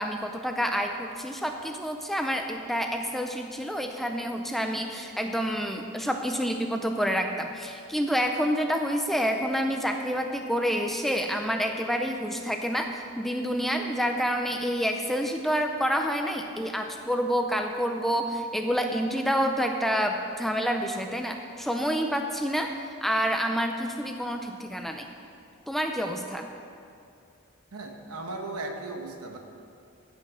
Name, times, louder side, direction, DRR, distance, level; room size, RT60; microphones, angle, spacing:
voice 1, 0.0-22.7 23.0-25.1 25.7-26.5, equal, ahead, 4 dB, 0.5 m, -28 dB
voice 2, 27.7-29.4, right 2 dB, 85° right, 4 dB, 1.2 m, -36 dB
15.0 x 5.8 x 6.2 m, 2.5 s
head